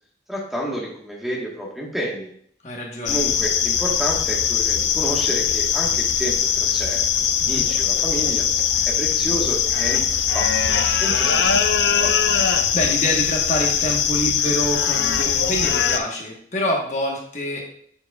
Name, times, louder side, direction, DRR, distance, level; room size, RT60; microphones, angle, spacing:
voice 1, 0.3-2.3 3.1-7.0 7.4-8.4 8.8-10.0 10.3-11.6 12.0-12.1, equal, ahead, -4 dB, 1.3 m, -30 dB
voice 2, 2.6-3.2 7.4-7.6 11.2-11.6 12.3-17.6, equal, 40° left, -1 dB, 1.1 m, -27 dB
sound 1, 3.1-16.0, left 8 dB, 85° left, 0.5 m, -21 dB
7.2 x 6.8 x 2.3 m, 0.63 s
head